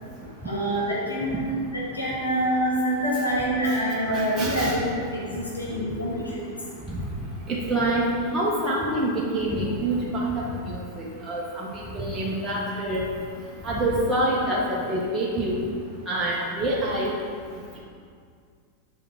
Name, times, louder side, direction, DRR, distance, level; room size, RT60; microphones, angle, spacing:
voice 1, 0.4-6.4, right 1 dB, 80° left, -7 dB, 2.0 m, -26 dB
voice 2, 4.1-4.8 6.9-7.0 7.5-13.0 13.6-15.7 16.1-17.1, right 1 dB, 15° right, -6 dB, 1.3 m, -26 dB
7.5 x 5.5 x 5.0 m, 2.2 s
figure-of-eight pair, 90°, 0 cm